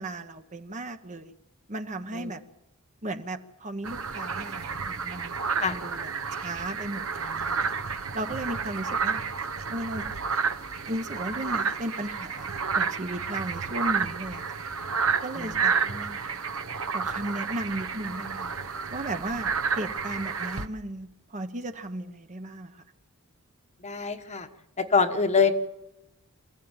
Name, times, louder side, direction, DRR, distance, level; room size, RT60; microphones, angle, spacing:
voice 1, 0.0-1.3 1.7-2.4 3.0-7.6 8.1-9.2 9.7-10.0 10.8-14.6 15.2-15.7 16.0-16.1 16.9-18.5 18.9-22.8, right 1 dB, 35° right, 8 dB, 1.1 m, -35 dB
sound 1, 3.8-20.7, right 5 dB, 65° right, 1.1 m, -30 dB
voice 2, 15.8-16.2 23.8-24.5 24.8-25.5, left 5 dB, 30° left, 7 dB, 1.2 m, -25 dB
26.0 x 15.0 x 9.0 m, 0.95 s
head